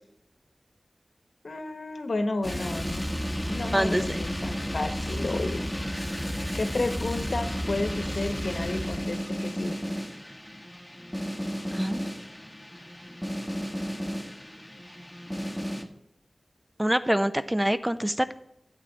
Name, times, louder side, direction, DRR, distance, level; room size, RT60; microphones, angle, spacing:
voice 1, 1.4-3.1 3.5-5.6 6.5-9.8, left 2 dB, 80° left, 7 dB, 1.1 m, -32 dB
sound 1, 2.4-15.8, equal, 10° left, 1.1 m, -33 dB
voice 2, 3.7-4.0 11.7-12.0 16.8-18.3, equal, 10° right, 11 dB, 0.5 m, -25 dB
12.5 x 7.7 x 4.0 m, 0.82 s
wide cardioid pair, 60°, 0 cm